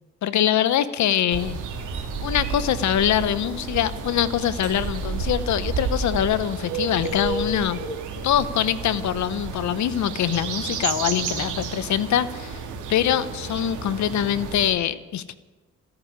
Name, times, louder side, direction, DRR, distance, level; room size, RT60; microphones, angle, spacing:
voice 1, 0.2-1.6 2.2-7.8 8.2-12.6 12.9-15.3, left 10 dB, 70° left, 15 dB, 0.9 m, -23 dB
sound 1, 1.3-14.7, right 5 dB, 80° right, 2.6 m, -31 dB
14.0 x 9.9 x 9.6 m, 1.2 s
cardioid pair, 90°, 30 cm